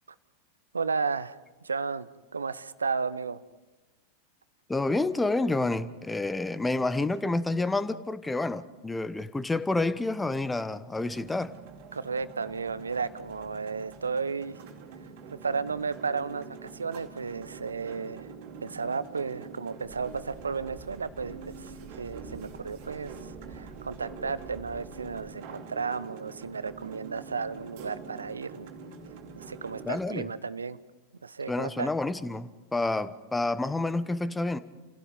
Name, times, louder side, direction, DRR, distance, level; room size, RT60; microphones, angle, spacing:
voice 1, 0.7-1.4 1.6-3.4 11.9-14.6 15.4-18.3 18.6-28.7 29.4-30.8 31.2-31.9, right 5 dB, 80° right, 0.8 m, -33 dB
voice 2, 4.7-11.5 29.9-30.3 31.5-34.6, left 2 dB, 10° left, 1.0 m, -29 dB
sound 1, 10.9-30.1, right 5 dB, 50° right, 2.7 m, -45 dB
sound 2, 19.8-25.3, right 3 dB, 15° right, 4.9 m, -50 dB
29.5 x 16.5 x 5.3 m
figure-of-eight pair, 90°, 0 cm